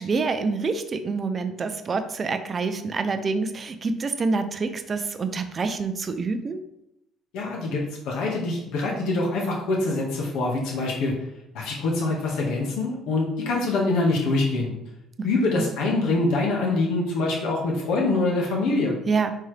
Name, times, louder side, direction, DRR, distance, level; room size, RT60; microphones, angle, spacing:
voice 1, 0.0-6.6 15.5-15.7 19.1-19.3, right 4 dB, 25° right, 8 dB, 0.6 m, -27 dB
voice 2, 7.3-11.1 11.5-14.7 15.2-18.9, left 2 dB, 70° left, -2 dB, 1.7 m, -24 dB
9.4 x 4.2 x 3.4 m, 0.84 s
cardioid pair, 165°, 0 cm